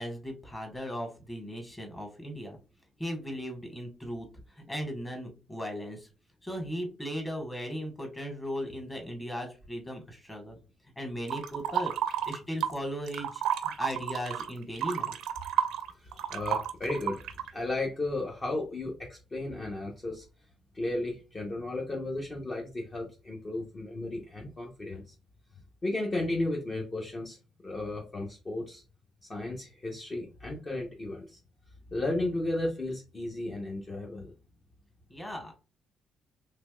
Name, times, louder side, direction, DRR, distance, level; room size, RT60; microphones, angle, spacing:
voice 1, 0.0-2.6 3.0-4.3 4.6-6.1 6.4-10.6 11.0-11.9 12.3-15.2 35.1-35.5, equal, 15° left, 2 dB, 1.4 m, -37 dB
sound 1, 11.3-12.8 13.1-17.5, right 10 dB, 85° right, 0.4 m, -31 dB
voice 2, 16.0-17.2 17.5-20.3 20.7-25.1 25.8-27.4 27.6-28.8 29.2-31.4 31.9-34.3, left 2 dB, 35° left, -2 dB, 0.8 m, -34 dB
3.3 x 3.1 x 2.2 m, 0.32 s
cardioid pair, 90°, 0 cm